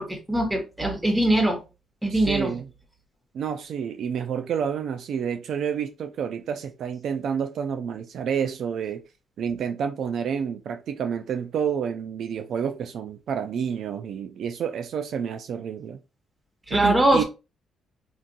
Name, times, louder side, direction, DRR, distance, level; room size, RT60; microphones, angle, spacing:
voice 1, 0.0-1.6 2.0-2.5 16.7-17.2, right 1 dB, 10° right, 1.0 m, -22 dB
voice 2, 2.1-2.7 3.3-9.0 9.4-16.0 16.7-17.2, right 7 dB, 65° right, 0.3 m, -29 dB
3.8 x 2.4 x 2.3 m
cardioid pair, 90°, 0 cm